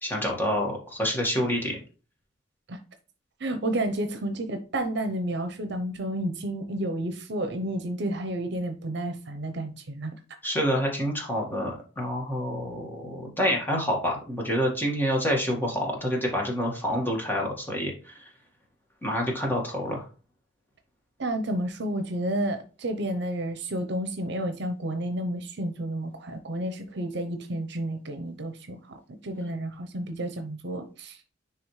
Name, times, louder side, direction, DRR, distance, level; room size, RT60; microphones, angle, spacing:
voice 1, 0.0-1.8 10.4-18.2 19.0-20.0, equal, 10° left, 1.8 m, -27 dB
voice 2, 3.4-10.1 21.2-29.0 29.2-31.2, right 1 dB, 65° right, 0.8 m, -31 dB
9.8 x 3.5 x 3.2 m
head